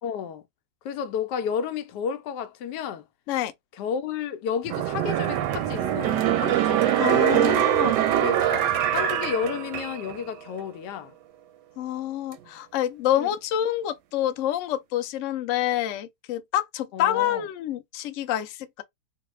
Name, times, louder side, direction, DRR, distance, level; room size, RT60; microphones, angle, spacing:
voice 1, 0.0-0.4 0.8-3.0 3.8-7.0 8.2-11.1 13.2-13.3 16.9-17.4, left 7 dB, 85° left, 1.2 m, -32 dB
sound 1, 4.7-10.2 10.6-10.7, right 11 dB, 90° right, 1.2 m, -23 dB
voice 2, 7.0-8.0 11.8-18.8, left 12 dB, 70° left, 0.7 m, -27 dB
3.2 x 2.2 x 3.0 m
omnidirectional pair, 1.8 m